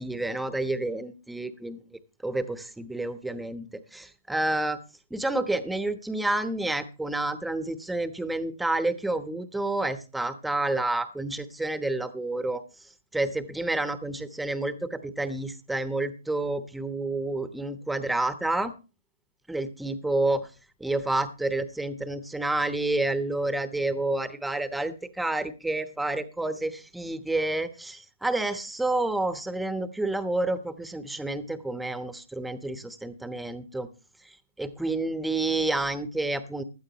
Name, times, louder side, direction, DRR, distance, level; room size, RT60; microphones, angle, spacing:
voice 1, 0.0-1.8 2.2-4.8 5.1-12.6 13.1-18.7 19.5-20.5 20.8-33.9 34.2-36.6, right 2 dB, 5° right, 11 dB, 1.1 m, -29 dB
16.0 x 12.0 x 3.1 m, 0.32 s
hypercardioid pair, 125°, 0 cm